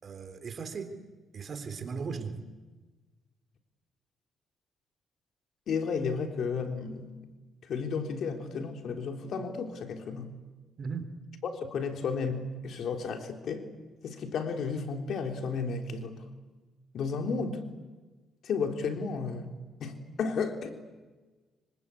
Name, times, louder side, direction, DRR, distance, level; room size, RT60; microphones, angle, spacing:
voice 1, 0.0-0.9 1.3-2.4 10.8-11.1, right 5 dB, 45° right, 9 dB, 3.6 m, -37 dB
voice 2, 5.7-7.1 7.6-10.3 11.4-13.7 14.0-16.2 16.9-17.6 18.4-19.5 19.8-20.8, left 5 dB, 65° left, 5 dB, 3.6 m, -33 dB
25.5 x 25.0 x 8.5 m, 1.3 s
cardioid pair, 90°, 0 cm